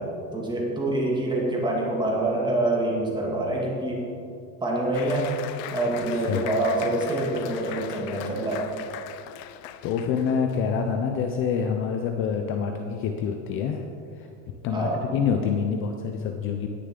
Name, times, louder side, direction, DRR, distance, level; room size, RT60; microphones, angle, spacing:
voice 1, 0.0-4.1 4.6-5.4 5.7-8.7 14.7-15.0, right 1 dB, 10° right, -3 dB, 2.0 m, -26 dB
Applause, 4.9-10.7, left 11 dB, 75° left, 0.7 m, -40 dB
voice 2, 6.1-6.5 9.8-13.8 14.2-14.3 14.6-16.7, left 6 dB, 30° left, 4 dB, 0.4 m, -26 dB
18.5 x 6.7 x 3.7 m, 2.5 s
supercardioid pair, 145°, 49 cm